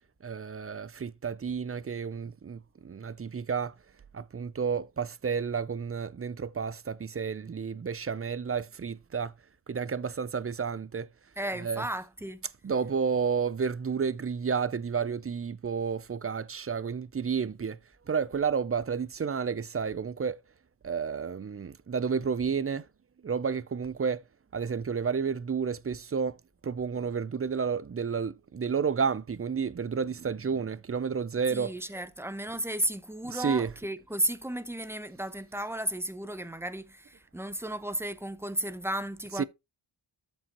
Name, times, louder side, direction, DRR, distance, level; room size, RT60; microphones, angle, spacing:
voice 1, 0.2-3.7 4.1-9.3 9.7-11.1 11.6-11.9 12.6-17.8 18.1-20.4 20.8-22.9 23.2-24.2 24.5-26.4 26.6-31.7 33.2-33.7 39.4-39.5, right 6 dB, 30° right, 0.4 m, -31 dB
voice 2, 11.4-12.4 31.5-39.4, right 1 dB, 5° right, 0.7 m, -34 dB
12.5 x 5.5 x 2.9 m
wide cardioid pair, 85°, 48 cm